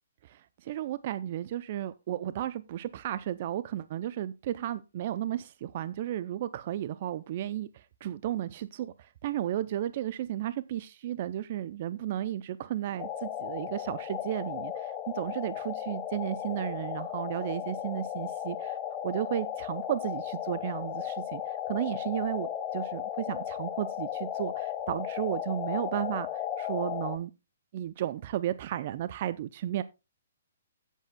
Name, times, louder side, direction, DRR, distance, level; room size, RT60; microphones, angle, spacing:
voice 1, 0.2-18.8 19.0-27.3 27.7-29.8, right 12 dB, 50° right, 0.5 m, -34 dB
sound 1, 13.0-27.2, left 10 dB, 25° left, 1.2 m, -35 dB
16.0 x 8.3 x 2.3 m
hypercardioid pair, 135°, 0 cm